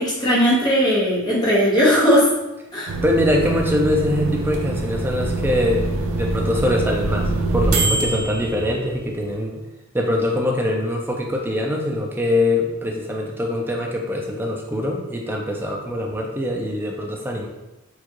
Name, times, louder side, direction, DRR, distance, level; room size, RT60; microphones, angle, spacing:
voice 1, 0.0-2.2 2.7-2.9, equal, 20° left, -8 dB, 1.0 m, -18 dB
sound 1, 2.9-9.3, right 2 dB, 75° right, 0.5 m, -24 dB
voice 2, 3.0-9.6 9.9-17.5, left 1 dB, 10° right, 0 dB, 0.4 m, -23 dB
4.4 x 2.4 x 2.9 m, 0.99 s
head